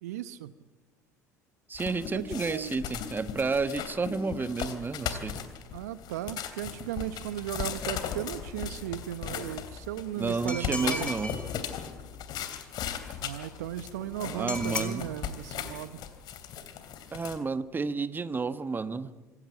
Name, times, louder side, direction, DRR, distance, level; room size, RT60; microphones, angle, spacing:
voice 1, 0.0-0.5 2.1-2.2 2.5-2.8 5.7-11.1 13.2-16.0, right 12 dB, 75° right, 15 dB, 0.9 m, -36 dB
sound 1, 1.7-17.4, left 8 dB, 50° left, 2.9 m, -37 dB
voice 2, 1.7-5.3 10.1-11.4 14.3-15.1 17.1-19.1, right 4 dB, 20° right, 12 dB, 1.4 m, -31 dB
sound 2, 10.5-11.5 14.5-14.9, left 2 dB, 15° left, 3.7 m, -35 dB
26.0 x 16.0 x 10.0 m, 1.2 s
figure-of-eight pair, 65°, 9 cm